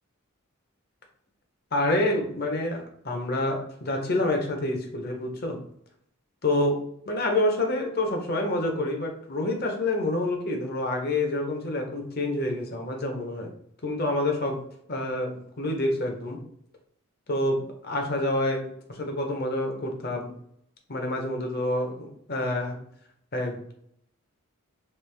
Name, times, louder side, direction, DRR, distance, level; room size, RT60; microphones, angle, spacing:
voice 1, 1.7-5.6 6.4-13.5 13.8-14.6 14.9-16.4 17.3-20.3 20.9-22.7 23.3-23.7, left 1 dB, 45° left, 2 dB, 0.7 m, -27 dB
3.2 x 2.5 x 3.3 m, 0.70 s
head